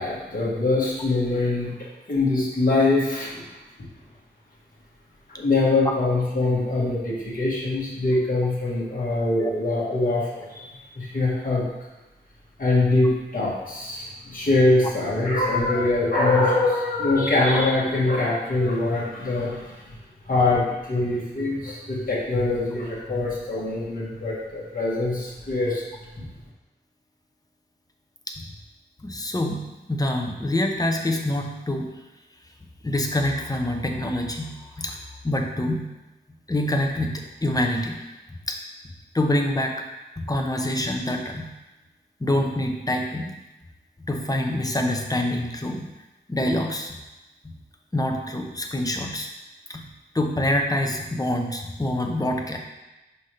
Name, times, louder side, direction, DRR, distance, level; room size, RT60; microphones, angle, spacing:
voice 1, 0.0-1.7 2.1-3.4 5.3-11.6 12.6-19.7 20.3-25.8 26.2-26.3, left 2 dB, 45° left, -6 dB, 1.5 m, -23 dB
voice 2, 29.0-31.9 32.8-35.9 36.5-38.0 38.5-38.6 39.1-39.7 40.2-41.5 42.2-43.3 44.1-45.9 46.3-47.0 47.4-47.5 47.9-49.3 49.7-49.9 50.1-52.6, left 1 dB, 20° left, 2 dB, 0.8 m, -26 dB
5.6 x 5.3 x 3.3 m, 1.1 s
wide cardioid pair, 85°, 19 cm